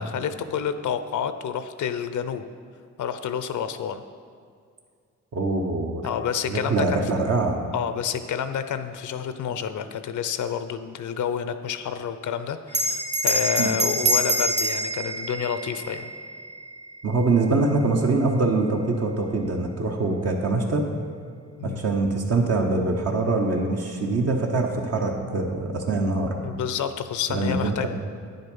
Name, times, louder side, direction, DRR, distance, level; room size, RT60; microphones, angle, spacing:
voice 1, 0.0-2.4 3.0-4.0 6.0-7.3 7.7-16.1 21.6-21.8 26.4-27.9, left 8 dB, 75° left, 10 dB, 0.6 m, -29 dB
voice 2, 5.3-6.0 6.5-7.6 13.6-13.7 17.0-20.9 21.6-26.3 27.3-27.9, right 3 dB, 55° right, 2 dB, 1.0 m, -24 dB
Bell, 12.7-17.6, right 1 dB, 25° right, 0.8 m, -26 dB
9.6 x 7.8 x 5.4 m, 2.2 s
wide cardioid pair, 155°, 30 cm